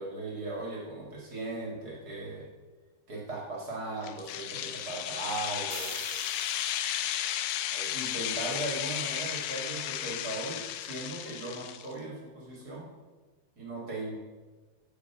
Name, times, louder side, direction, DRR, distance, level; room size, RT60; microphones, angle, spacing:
voice 1, 0.0-2.5 3.1-5.9 7.7-12.8 13.6-14.2, right 2 dB, 50° right, -2 dB, 1.1 m, -38 dB
sound 1, 4.0-11.9, left 11 dB, 80° left, 2.7 m, -34 dB
sound 2, 5.7-7.3, right 10 dB, 75° right, 2.2 m, -45 dB
15.0 x 6.6 x 5.8 m, 1.3 s
omnidirectional pair, 4.8 m